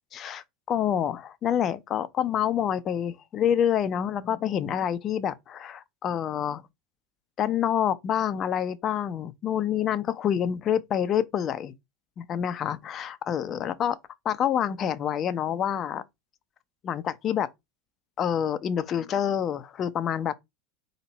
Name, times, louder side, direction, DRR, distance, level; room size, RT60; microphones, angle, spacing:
voice 1, 0.1-6.6 7.4-11.7 12.2-14.0 14.2-16.0 16.8-17.5 18.2-20.3, left 9 dB, 35° left, 0.6 m, -27 dB
4.4 x 3.0 x 4.1 m
figure-of-eight pair, 80°, 0 cm